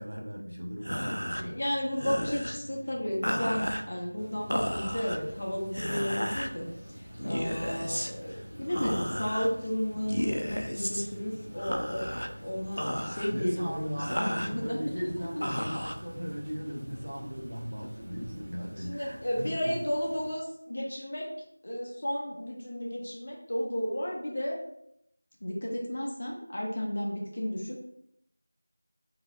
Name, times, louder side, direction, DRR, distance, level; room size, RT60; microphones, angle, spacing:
voice 1, 0.0-1.6 7.2-7.6 13.3-19.8, equal, 65° right, 1 dB, 0.7 m, -38 dB
sound 1, 0.8-16.7, equal, 85° left, 0.4 m, -35 dB
voice 2, 1.4-6.7 7.0-15.5 18.7-21.3 21.6-24.6 25.4-27.8, equal, 40° left, -1 dB, 0.7 m, -33 dB
sound 2, 4.2-20.3, equal, 35° right, 1.2 m, -49 dB
4.0 x 2.6 x 2.4 m, 0.76 s
figure-of-eight pair, 170°, 0 cm